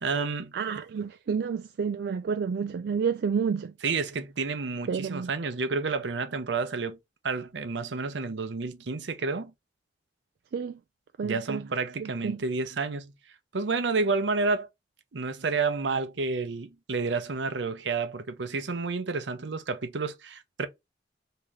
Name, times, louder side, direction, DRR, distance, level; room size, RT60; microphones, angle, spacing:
voice 1, 0.0-0.5 3.8-7.0 7.2-9.5 11.2-13.1 13.5-14.7 15.1-20.7, right 4 dB, 80° right, 0.7 m, -30 dB
voice 2, 0.5-3.7 4.9-5.3 10.5-10.8 11.2-11.6 12.0-12.4, right 6 dB, 65° right, 0.3 m, -30 dB
3.2 x 2.9 x 3.6 m
head